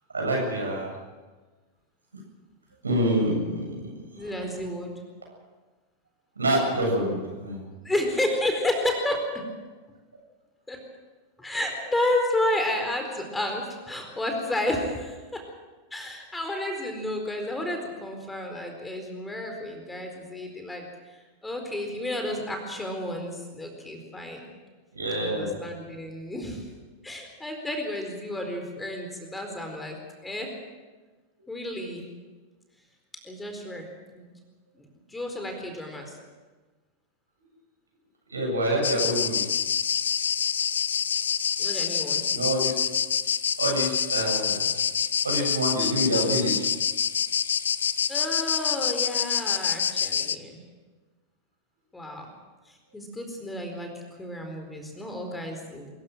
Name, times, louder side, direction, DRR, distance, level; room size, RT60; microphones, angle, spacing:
voice 1, 0.1-0.9 2.8-3.8 4.2-4.3 6.4-7.6 24.9-25.5 38.3-39.4 42.3-42.8 43.6-44.6 45.2-46.6, right 1 dB, 75° right, 0 dB, 7.7 m, -26 dB
voice 2, 4.2-4.9 7.8-9.2 10.7-10.8 11.4-15.4 15.9-24.5 25.2-26.7 27.0-30.0 30.2-30.5 31.5-32.0 33.2-34.3 34.7-36.2 41.6-42.2 48.1-50.6 51.9-52.3 52.7-53.9 54.2-55.9, left 1 dB, 10° left, 3 dB, 4.4 m, -31 dB
sound 1, 38.8-50.4, left 8 dB, 65° left, 0.7 m, -26 dB
24.0 x 15.5 x 7.8 m, 1.3 s
figure-of-eight pair, 90°, 0 cm